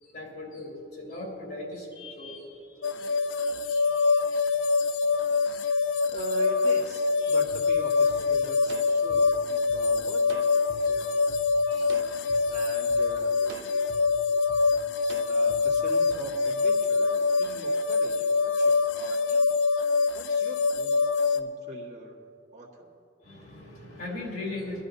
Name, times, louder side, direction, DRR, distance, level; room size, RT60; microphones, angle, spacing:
voice 1, 0.0-3.1 3.4-4.5 4.9-5.0 5.5-5.6 7.2-7.3 11.7-12.1 12.4-12.5 13.4-13.5 23.2-24.8, left 2 dB, 55° left, -2 dB, 3.2 m, -40 dB
sound 1, 2.8-21.4, left 4 dB, 90° left, 0.6 m, -25 dB
voice 2, 6.1-10.6 10.8-11.2 12.5-13.5 15.3-19.8 20.1-21.1 21.3-22.2 22.5-22.9, right 2 dB, 40° right, -4 dB, 1.8 m, -42 dB
sound 2, 7.5-7.6 8.1-8.2 8.7-9.8 10.3-10.8 11.3-11.4 11.9-12.4 12.9-13.0 13.5-14.0 14.5-14.6 15.1-15.6 16.1-16.2, right 2 dB, 75° right, 0.9 m, -45 dB
23.5 x 12.0 x 2.7 m, 2.7 s
head